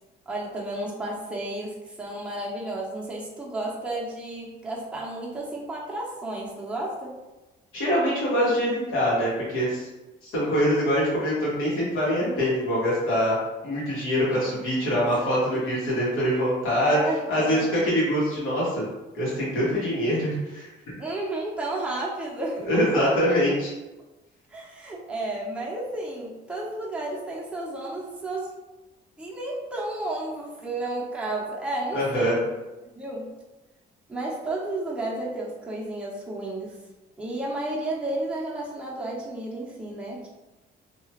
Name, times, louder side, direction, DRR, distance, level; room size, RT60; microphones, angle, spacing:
voice 1, 0.3-7.2 14.3-14.6 16.4-16.5 16.8-17.7 21.0-23.1 24.5-28.6 29.2-32.5 33.0-33.3 34.1-36.8 37.2-40.3, right 2 dB, 5° right, -5 dB, 0.7 m, -32 dB
voice 2, 7.7-9.9 10.2-13.3 13.6-17.0 17.3-18.8 19.1-20.7 22.6-23.7 31.9-32.3, equal, 80° left, -7 dB, 1.5 m, -24 dB
2.8 x 2.3 x 2.9 m, 1.1 s
cardioid pair, 90°, 20 cm